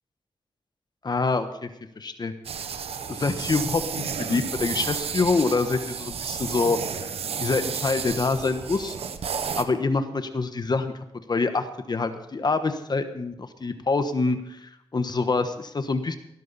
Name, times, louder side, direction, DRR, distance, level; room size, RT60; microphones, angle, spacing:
voice 1, 1.0-1.7 2.0-2.3 3.1-6.8 7.4-9.0 9.6-10.9 11.3-16.1, left 3 dB, 45° left, 9 dB, 1.2 m, -26 dB
sound 1, 2.4-9.6, right 7 dB, 85° right, 1.0 m, -32 dB
19.0 x 12.0 x 4.2 m, 0.83 s
cardioid pair, 75°, 10 cm